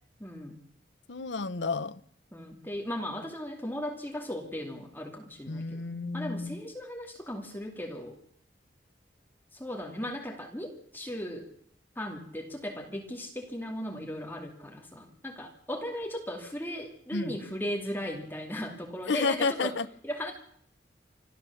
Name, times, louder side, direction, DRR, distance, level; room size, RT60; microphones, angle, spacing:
voice 1, 0.2-0.6 2.3-5.8 6.1-8.2 9.5-11.5 12.0-19.8 20.0-20.3, equal, 10° left, 2.4 m, -37 dB
voice 2, 1.1-2.0 5.5-6.6 17.1-17.4 19.1-19.9, left 4 dB, 85° left, 0.8 m, -31 dB
26.0 x 14.0 x 7.1 m
head